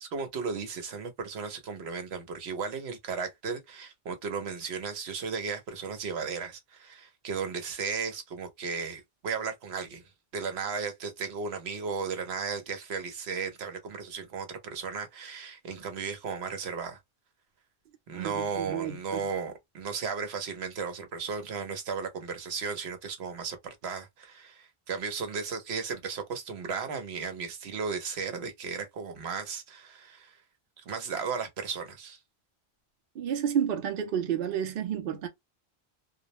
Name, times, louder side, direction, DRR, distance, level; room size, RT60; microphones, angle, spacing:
voice 1, 0.0-10.0 10.3-17.0 18.1-30.4 30.8-32.2, right 5 dB, 85° right, 1.0 m, -35 dB
voice 2, 18.1-19.2 33.2-35.3, right 8 dB, 65° right, 0.7 m, -30 dB
2.3 x 2.0 x 2.8 m
omnidirectional pair, 1.1 m